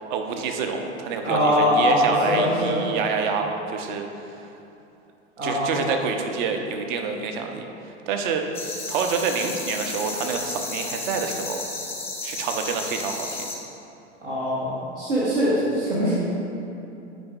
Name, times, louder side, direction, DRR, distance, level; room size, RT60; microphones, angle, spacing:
voice 1, 0.0-4.3 5.4-8.5 8.9-11.6 12.2-13.5, right 5 dB, 45° right, 5 dB, 0.6 m, -27 dB
voice 2, 1.2-2.8 5.4-5.7 14.2-16.1, equal, 80° right, -8 dB, 1.3 m, -22 dB
sound 1, 8.5-13.6, left 3 dB, 5° left, 0.4 m, -33 dB
8.4 x 5.0 x 2.4 m, 2.8 s
figure-of-eight pair, 85°, 35 cm